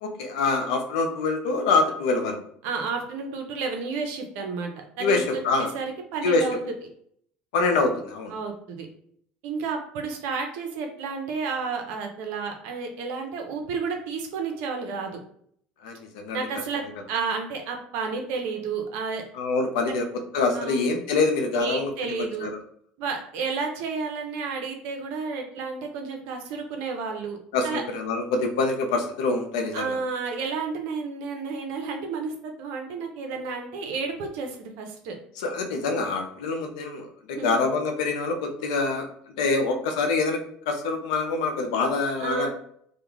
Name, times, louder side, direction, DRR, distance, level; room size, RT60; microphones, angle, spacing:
voice 1, 0.0-2.4 5.0-5.7 6.2-6.5 7.5-8.3 15.8-16.5 19.3-20.1 20.3-21.9 22.2-22.5 27.5-29.9 35.4-39.1 39.4-42.5, left 3 dB, 85° left, 4 dB, 0.5 m, -25 dB
voice 2, 2.6-4.7 5.0-5.3 5.6-6.6 8.3-8.9 9.4-15.2 16.3-19.2 19.9-20.0 20.5-20.9 21.5-22.5 23.0-27.4 27.6-27.8 29.7-35.2 37.3-37.6 42.2-42.5, right 4 dB, 70° right, 4 dB, 0.6 m, -31 dB
2.4 x 2.2 x 3.1 m, 0.64 s
supercardioid pair, 85°, 4 cm